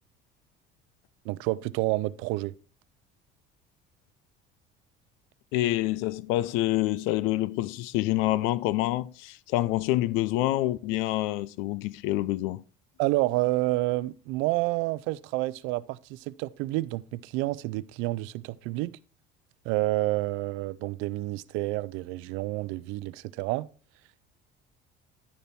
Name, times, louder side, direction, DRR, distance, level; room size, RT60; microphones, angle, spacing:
voice 1, 1.3-2.5 13.0-18.9 19.7-23.7, right 19 dB, 85° right, 0.5 m, -29 dB
voice 2, 5.5-12.6, left 16 dB, 90° left, 0.5 m, -27 dB
11.0 x 6.9 x 4.3 m
cardioid pair, 150°, 20 cm